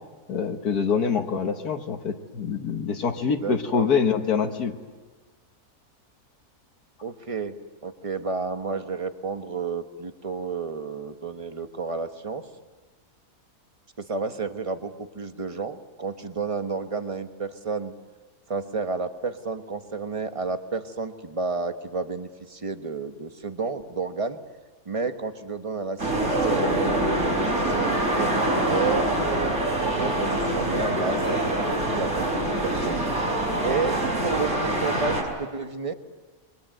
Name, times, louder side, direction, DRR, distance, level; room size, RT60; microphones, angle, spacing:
voice 1, 0.3-4.8, left 6 dB, 85° left, 4 dB, 1.9 m, -25 dB
voice 2, 3.1-3.9 7.0-7.5 7.8-12.4 14.0-17.9 18.5-24.4 24.8-29.5 29.9-33.4 33.6-35.9, right 4 dB, 25° right, 8 dB, 1.2 m, -31 dB
sound 1, 26.0-35.2, right 1 dB, 50° right, 5.4 m, -25 dB
29.0 x 23.5 x 7.8 m, 1.3 s
omnidirectional pair, 1.6 m